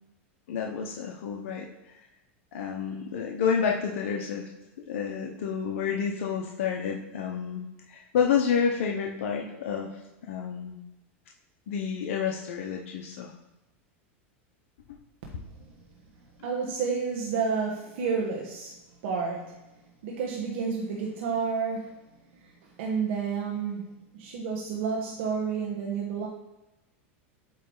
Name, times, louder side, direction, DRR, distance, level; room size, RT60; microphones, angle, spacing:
voice 1, 0.5-1.7 2.5-4.5 4.9-7.6 7.9-9.9 10.3-10.8 11.7-13.3, left 7 dB, 80° left, 1 dB, 0.8 m, -29 dB
voice 2, 16.4-18.7 19.0-19.6 20.0-21.9 22.4-26.3, right 5 dB, 70° right, -1 dB, 1.2 m, -30 dB
8.5 x 3.2 x 3.9 m, 0.98 s
hypercardioid pair, 115°, 7 cm